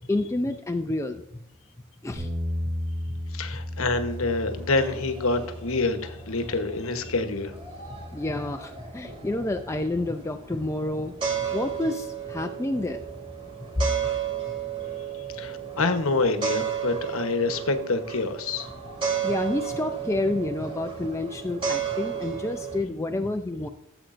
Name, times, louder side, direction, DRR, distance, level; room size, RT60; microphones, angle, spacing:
voice 1, 0.1-1.4 2.0-2.3 8.1-11.1 11.5-13.0 13.8-13.9 19.2-23.7, left 2 dB, 15° left, 6 dB, 0.4 m, -29 dB
Bass guitar, 2.2-8.4, left 1 dB, 45° right, 4.0 m, -35 dB
voice 2, 3.3-7.5 15.3-18.7, left 3 dB, 70° left, 8 dB, 1.1 m, -27 dB
sound 1, 3.8-22.8, right 7 dB, 25° right, 2.4 m, -34 dB
15.0 x 7.8 x 2.6 m, 0.78 s
head